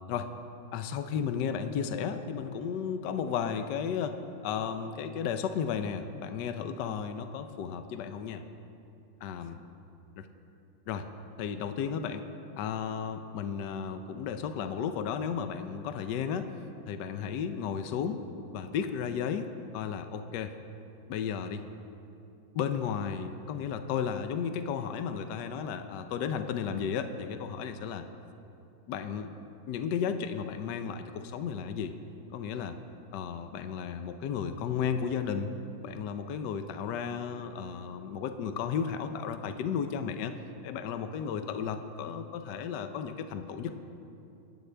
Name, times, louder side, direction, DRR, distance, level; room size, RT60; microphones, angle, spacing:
voice 1, 0.7-4.2 4.4-8.4 9.2-9.6 10.2-10.3 10.9-11.1 11.4-12.2 12.6-16.5 16.9-18.2 18.5-19.5 19.7-20.5 21.1-21.7 22.5-28.0 28.9-29.3 29.7-31.9 32.3-32.8 33.1-35.5 35.8-40.3 40.6-43.8, left 7 dB, 70° left, 8 dB, 1.2 m, -34 dB
27.0 x 9.4 x 3.3 m, 2.8 s
omnidirectional pair, 2.2 m